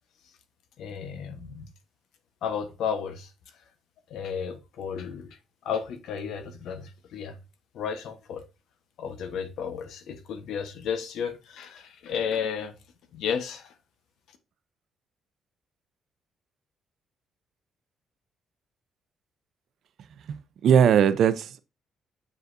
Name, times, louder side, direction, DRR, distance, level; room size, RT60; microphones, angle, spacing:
voice 1, 0.8-1.7 2.4-3.3 4.1-5.3 5.6-7.4 7.7-8.4 9.0-12.7 13.1-13.7, left 7 dB, 80° left, 1.1 m, -33 dB
voice 2, 20.3-21.6, right 8 dB, 70° right, 0.6 m, -20 dB
7.9 x 5.0 x 2.6 m
cardioid pair, 90°, 0 cm